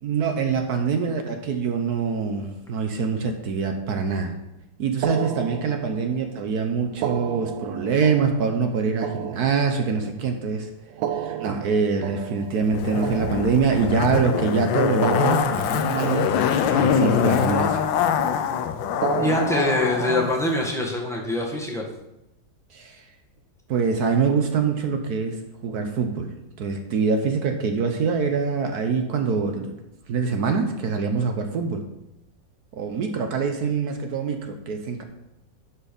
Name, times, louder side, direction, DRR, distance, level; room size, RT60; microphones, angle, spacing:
voice 1, 0.0-4.4 4.8-10.7 11.1-16.3 16.7-17.9 22.7-23.0 23.7-29.7 30.1-31.8 32.7-35.0, right 5 dB, 60° right, 5 dB, 1.2 m, -24 dB
sound 1, 5.0-6.3 6.9-10.2 10.9-14.2 14.9-16.8 17.0-18.1 18.9-20.7, right 9 dB, 80° right, 1.4 m, -33 dB
Zipper (clothing), 12.7-20.4 20.6-20.7, left 8 dB, 80° left, 1.3 m, -23 dB
voice 2, 19.2-21.8, left 1 dB, ahead, -1 dB, 1.3 m, -24 dB
11.0 x 4.5 x 5.2 m, 0.88 s
omnidirectional pair, 2.1 m